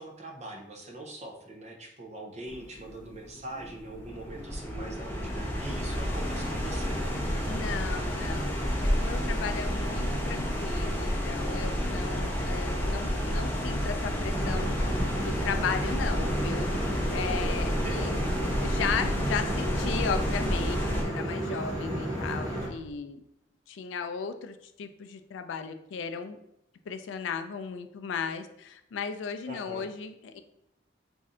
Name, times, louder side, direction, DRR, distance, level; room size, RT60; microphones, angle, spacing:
voice 1, 0.0-7.1 17.8-18.1 29.5-29.9, right 1 dB, 35° right, 1 dB, 0.6 m, -42 dB
sound 1, 2.5-21.0, equal, 10° left, 0.5 m, -30 dB
voice 2, 7.4-14.8 15.2-16.7 17.1-18.2 18.6-23.2 23.7-26.4 26.9-30.4, left 6 dB, 75° left, 8 dB, 0.3 m, -35 dB
sound 2, 14.3-22.7, right 1 dB, 20° right, 1.3 m, -33 dB
sound 3, 17.0-22.9, right 1 dB, 90° right, 0.5 m, -46 dB
3.2 x 2.6 x 3.7 m, 0.79 s
head